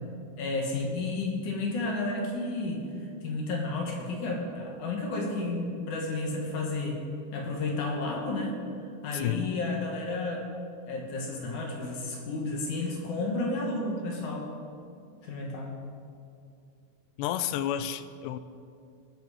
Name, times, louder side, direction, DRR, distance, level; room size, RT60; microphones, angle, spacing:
voice 1, 0.4-2.8 3.2-7.0 7.3-8.6 9.0-10.5 10.9-14.5 15.2-15.7, left 2 dB, 60° left, 0 dB, 2.2 m, -32 dB
voice 2, 17.2-18.4, left 11 dB, 85° left, 13 dB, 2.7 m, -30 dB
20.5 x 7.4 x 4.9 m, 2.4 s
omnidirectional pair, 4.9 m